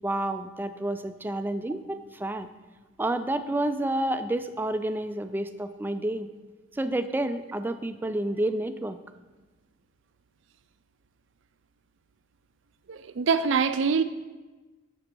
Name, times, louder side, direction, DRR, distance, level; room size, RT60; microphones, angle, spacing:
voice 1, 0.0-2.5 3.0-6.3 6.7-9.0, right 1 dB, 10° right, 0.3 m, -29 dB
voice 2, 12.9-14.0, right 5 dB, 75° right, 0.5 m, -24 dB
7.6 x 7.0 x 4.6 m
head